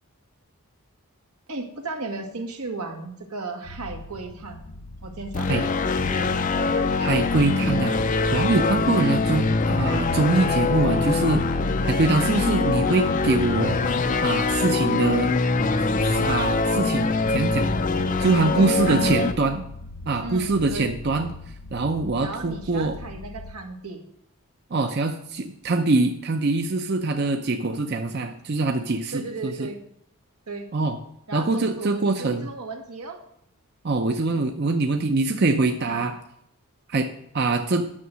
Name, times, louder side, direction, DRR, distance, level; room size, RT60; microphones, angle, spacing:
voice 1, 1.5-4.6 5.0-6.9 8.9-9.3 18.4-19.3 20.2-20.9 22.2-24.0 29.1-29.8 30.5-30.7 31.3-33.2 35.9-36.1, right 3 dB, 90° right, 2 dB, 1.7 m, -34 dB
sound 1, 3.6-23.5, left 2 dB, 75° left, 0.8 m, -40 dB
sound 2, 5.3-19.3, left 3 dB, 35° left, 0.4 m, -23 dB
voice 2, 7.0-7.9 8.3-11.5 11.8-13.8 14.2-15.3 16.0-17.7 18.2-19.6 20.1-21.3 21.7-23.0 24.7-29.7 30.7-31.0 31.3-32.5 33.8-36.2 36.9-37.1 37.3-37.8, right 3 dB, 45° right, 5 dB, 0.6 m, -23 dB
9.8 x 6.6 x 6.1 m, 0.74 s
head